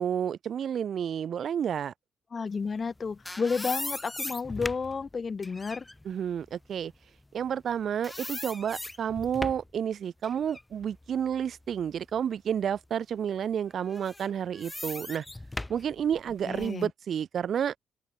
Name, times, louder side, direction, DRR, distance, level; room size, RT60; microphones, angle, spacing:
voice 1, 0.0-1.9 6.1-6.9 7.3-15.3 15.7-17.7, right 8 dB, 60° right, 1.8 m, -30 dB
voice 2, 2.3-5.8 16.5-16.9, left 5 dB, 35° left, 0.7 m, -31 dB
sound 1, 2.8-7.7 8.0-9.8 10.2-12.2 12.7-12.8 13.8-16.8, left 2 dB, 10° left, 3.5 m, -39 dB
open air
cardioid pair, 90°, 0 cm